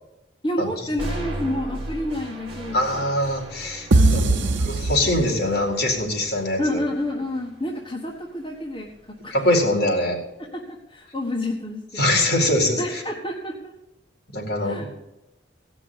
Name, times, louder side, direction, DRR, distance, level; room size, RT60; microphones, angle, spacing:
voice 1, 0.4-3.0 3.9-4.8 6.6-9.3 10.4-12.1 12.8-13.7 14.6-14.9, left 1 dB, 25° left, -2 dB, 1.5 m, -29 dB
sound 1, 1.0-9.0, right 1 dB, 30° right, 2.0 m, -37 dB
voice 2, 2.7-4.2 4.6-6.8 9.3-10.2 11.9-13.0 14.3-14.9, left 1 dB, 55° left, 0 dB, 4.1 m, -23 dB
sound 2, 3.9-5.7, right 2 dB, 80° right, 0.8 m, -20 dB
17.0 x 6.2 x 9.7 m, 0.90 s
head